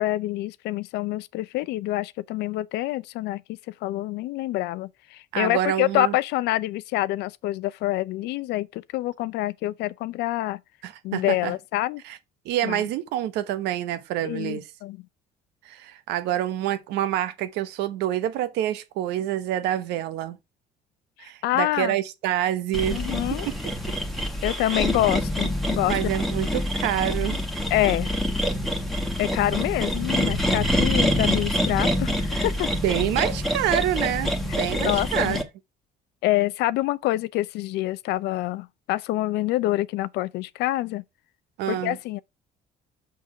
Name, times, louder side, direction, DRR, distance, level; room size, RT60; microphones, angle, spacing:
voice 1, 0.0-10.6 11.0-12.0 12.6-12.8 14.2-15.0 21.4-22.0 22.9-23.5 24.4-25.9 27.7-28.1 29.2-32.7 34.8-35.4 36.2-41.0 41.7-42.2, left 16 dB, 85° left, 0.5 m, -26 dB
voice 2, 5.3-6.2 10.8-11.5 12.0-12.2 12.4-14.7 15.6-20.4 21.2-23.0 23.3-23.5 25.8-27.4 32.7-35.4 41.6-42.0, right 12 dB, 90° right, 1.0 m, -27 dB
sound 1, 22.7-35.4, equal, ahead, 1.4 m, -26 dB
6.1 x 5.7 x 4.8 m
cardioid pair, 110°, 17 cm